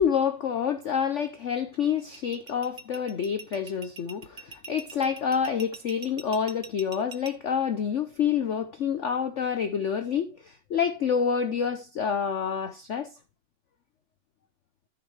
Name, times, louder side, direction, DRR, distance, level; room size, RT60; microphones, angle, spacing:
voice 1, 0.0-13.1, left 7 dB, 70° left, 0.7 m, -28 dB
sound 1, 2.0-7.3, right 4 dB, 80° right, 0.4 m, -43 dB
13.5 x 6.4 x 3.2 m
omnidirectional pair, 2.1 m